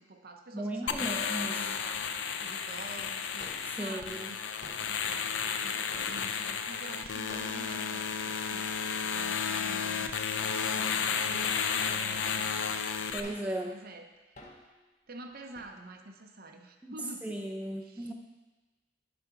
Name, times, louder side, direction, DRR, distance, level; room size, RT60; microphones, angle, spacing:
voice 1, 0.0-4.4 4.9-8.7 9.0-12.9 13.6-14.4 15.1-17.3 17.8-18.1, right 2 dB, 50° right, 5 dB, 0.7 m, -48 dB
voice 2, 0.5-1.5 3.8-4.2 13.1-13.7 16.8-16.9 17.2-18.1, right 1 dB, 5° right, 1 dB, 0.6 m, -36 dB
sound 1, 0.9-13.2, left 6 dB, 70° left, 0.5 m, -32 dB
sound 2, 1.9-2.0 2.7-2.8 3.0-3.1 3.3-4.1 4.4-5.2 5.5-6.7 7.3-7.9 8.2-8.3 8.6-8.8 9.4-9.9 10.5-10.6 11.3-11.4 11.8-13.7 14.4-14.8 15.3-15.8, left 2 dB, 40° left, 1.1 m, -51 dB
11.0 x 4.3 x 5.8 m, 1.2 s
head